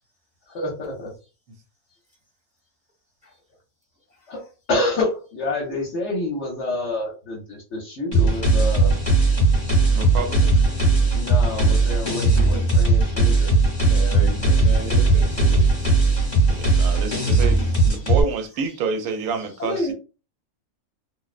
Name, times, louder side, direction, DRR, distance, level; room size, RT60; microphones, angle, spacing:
voice 1, 0.5-1.1 4.3-4.4 4.7-9.0 11.1-13.5 19.6-19.9, left 2 dB, 60° left, 0.9 m, -27 dB
sound 1, 8.1-18.2, right 2 dB, 35° left, 1.0 m, -18 dB
voice 2, 9.9-10.5 16.5-17.6 17.8-19.9, right 5 dB, 85° right, 1.1 m, -28 dB
voice 3, 13.8-16.3 16.6-16.8, equal, 5° right, 0.8 m, -35 dB
2.5 x 2.0 x 2.4 m
omnidirectional pair, 1.5 m